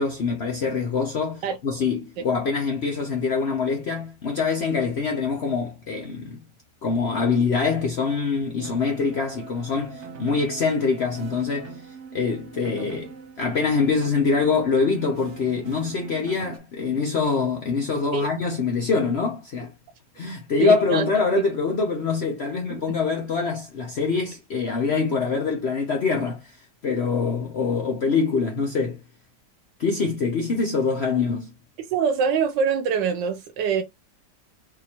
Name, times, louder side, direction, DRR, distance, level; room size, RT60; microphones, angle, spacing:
voice 1, 0.0-6.4 6.8-11.8 12.1-13.1 13.4-19.7 20.2-26.5 26.8-29.0 29.8-31.5, left 4 dB, 60° left, 0.6 m, -24 dB
sound 1, 8.6-16.6, right 5 dB, 60° right, 0.8 m, -41 dB
voice 2, 20.6-21.1 22.7-22.8 31.8-33.8, right 6 dB, 80° right, 1.2 m, -24 dB
3.7 x 2.9 x 2.8 m
omnidirectional pair, 1.9 m